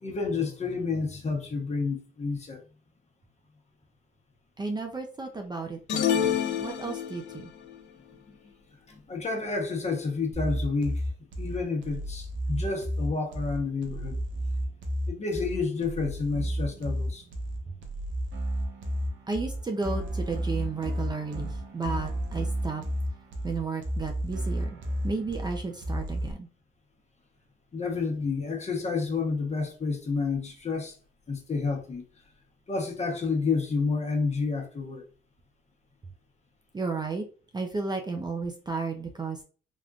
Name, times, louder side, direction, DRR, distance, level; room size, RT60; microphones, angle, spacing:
voice 1, 0.0-2.6 8.3-8.4 8.9-11.0 11.4-14.2 15.1-17.2 27.7-30.9 31.3-32.0 32.7-35.0, left 4 dB, 35° left, 1.0 m, -30 dB
voice 2, 4.6-7.5 19.3-22.8 23.4-24.8 25.0-26.5 36.7-37.3 37.5-39.4, right 4 dB, 20° right, 0.5 m, -33 dB
sound 1, 5.9-7.4, left 9 dB, 65° left, 0.5 m, -27 dB
sound 2, 10.3-26.3, equal, 70° right, 0.9 m, -32 dB
3.5 x 2.5 x 2.4 m
cardioid pair, 90°, 20 cm